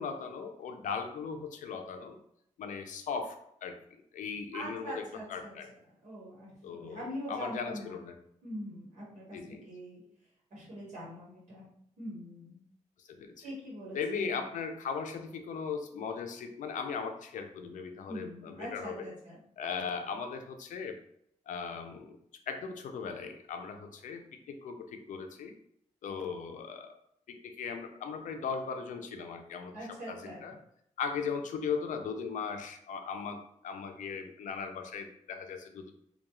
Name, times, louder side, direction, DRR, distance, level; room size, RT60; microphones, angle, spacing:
voice 1, 0.0-2.2 2.6-3.4 3.6-5.0 5.3-5.7 6.6-8.1 9.3-9.6 13.1-13.4 13.9-19.1 19.6-21.0 21.5-22.2 22.5-25.5 26.0-26.9 27.3-29.8 30.1-30.5 31.0-35.9, left 5 dB, 90° left, 6 dB, 0.4 m, -38 dB
voice 2, 4.5-5.5 6.0-8.1 8.4-10.0 10.5-11.7 12.0-12.6 13.4-14.4 18.1-19.4 29.7-30.5, equal, 70° right, -6 dB, 1.1 m, -43 dB
2.3 x 2.2 x 2.9 m, 0.72 s
wide cardioid pair, 120°, 13 cm